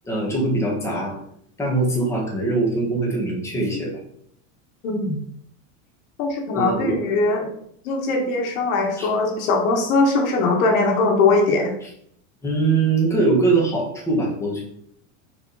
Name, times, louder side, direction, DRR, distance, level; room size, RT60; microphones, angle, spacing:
voice 1, 0.0-1.2 1.6-4.0 6.5-6.9 9.0-9.1 11.8-11.9 12.4-14.6, right 3 dB, 5° left, -4 dB, 1.6 m, -22 dB
voice 2, 4.8-5.2 6.2-7.5 7.9-11.7, left 3 dB, 85° left, 1 dB, 1.8 m, -20 dB
5.0 x 4.9 x 4.1 m, 0.70 s
supercardioid pair, 155°, 40 cm